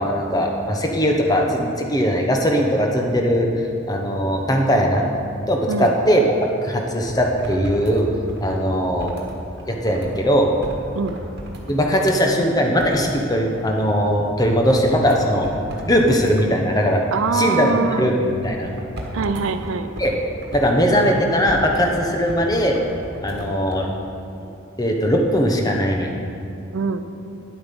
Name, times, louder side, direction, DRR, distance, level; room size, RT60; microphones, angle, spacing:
voice 1, 0.0-3.5 3.9-5.0 5.5-6.2 6.6-8.1 8.4-9.1 9.7-10.5 11.7-15.5 15.9-17.0 17.3-18.7 20.0-20.1 20.5-22.8 23.2-23.9 24.8-26.1, equal, 20° left, 1 dB, 0.9 m, -19 dB
sound 1, 7.1-10.2 10.6-10.8 11.1-12.4 12.8-14.0 14.4-14.6 14.9-16.5 18.3-21.9 22.3-23.8, equal, 55° right, 1.5 m, -35 dB
voice 2, 17.1-18.1 19.1-19.9 26.7-27.1, right 5 dB, 85° right, 10 dB, 0.6 m, -23 dB
9.9 x 8.0 x 5.3 m, 2.6 s
head